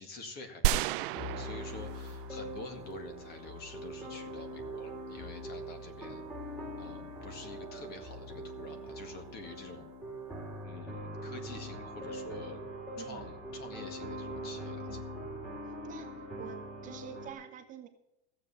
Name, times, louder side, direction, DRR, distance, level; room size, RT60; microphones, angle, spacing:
voice 1, 0.0-6.2 6.8-9.9 10.6-12.6 13.0-15.0, left 3 dB, 35° left, 7 dB, 1.9 m, -47 dB
sound 1, 0.6-2.6 2.9-3.0, right 14 dB, 60° right, 0.5 m, -32 dB
sound 2, 1.1-17.3, equal, ahead, 2.7 m, -42 dB
voice 2, 13.0-13.3 14.9-15.0 15.8-16.1 16.4-17.9, right 7 dB, 25° right, 5 dB, 1.0 m, -47 dB
14.5 x 7.7 x 7.0 m, 0.81 s
supercardioid pair, 155°, 29 cm